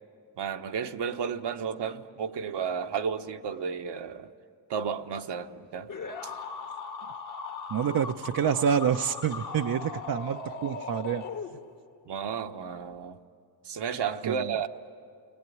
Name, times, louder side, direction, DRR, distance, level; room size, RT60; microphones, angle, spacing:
voice 1, 0.4-4.3 4.7-5.9 6.2-6.3 12.0-13.2 13.6-14.7, right 7 dB, 70° right, 6 dB, 1.1 m, -32 dB
sound 1, 5.9-11.9, left 5 dB, 45° left, 1.5 m, -39 dB
voice 2, 7.7-11.2 14.2-14.6, right 8 dB, 55° right, 6 dB, 0.7 m, -27 dB
30.0 x 21.0 x 9.3 m, 2.3 s
cardioid pair, 95°, 42 cm